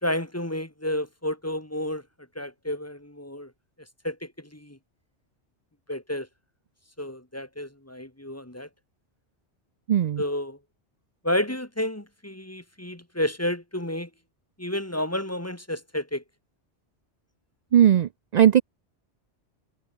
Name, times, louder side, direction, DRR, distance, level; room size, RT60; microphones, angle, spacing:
voice 1, 0.0-2.0 2.4-3.5 4.0-4.8 5.9-6.3 7.0-8.7 10.2-10.6 11.2-14.1 14.6-16.2, left 1 dB, 15° left, 1.9 m, -30 dB
voice 2, 9.9-10.2 17.7-18.6, right 10 dB, 60° right, 0.4 m, -18 dB
omnidirectional pair, 1.2 m